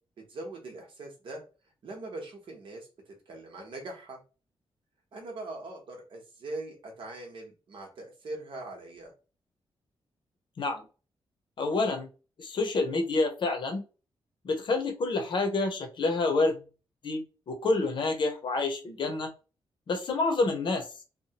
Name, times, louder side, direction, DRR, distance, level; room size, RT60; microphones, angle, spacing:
voice 1, 0.2-1.4 1.8-4.2 5.1-9.1, right 2 dB, 65° right, 1 dB, 0.9 m, -41 dB
voice 2, 11.6-12.1 12.4-13.8 14.4-16.5 17.0-19.3 19.9-20.9, left 3 dB, 55° left, 4 dB, 0.7 m, -28 dB
2.9 x 2.2 x 2.8 m, 0.33 s
wide cardioid pair, 160°, 10 cm